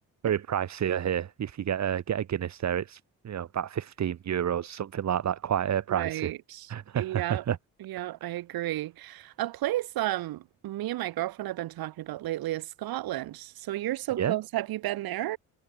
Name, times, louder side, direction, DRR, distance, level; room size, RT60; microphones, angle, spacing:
voice 1, 0.2-6.3 6.7-7.6 14.2-14.4, right 9 dB, 50° right, 1.0 m, -29 dB
voice 2, 5.9-7.4 7.8-15.4, right 15 dB, 85° right, 1.5 m, -32 dB
cardioid pair, 70°, 35 cm